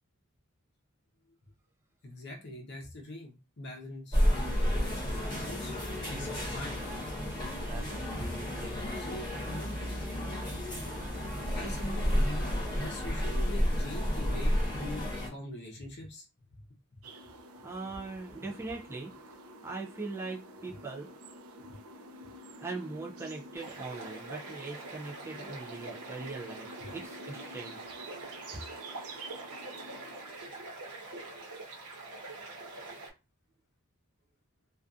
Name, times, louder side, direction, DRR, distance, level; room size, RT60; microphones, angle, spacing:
voice 1, 2.0-6.8 8.7-9.8 11.5-16.2, left 1 dB, 50° left, 1 dB, 0.7 m, -43 dB
sound 1, 4.1-15.3, equal, 20° left, 1.1 m, -31 dB
voice 2, 7.6-9.1 17.6-21.1 22.6-27.9, right 3 dB, 10° right, -2 dB, 0.3 m, -41 dB
sound 2, 17.0-30.4, right 2 dB, 75° right, 0.5 m, -49 dB
sound 3, 23.5-33.1, right 2 dB, 90° right, 0.9 m, -45 dB
2.5 x 2.3 x 2.4 m, 0.27 s
head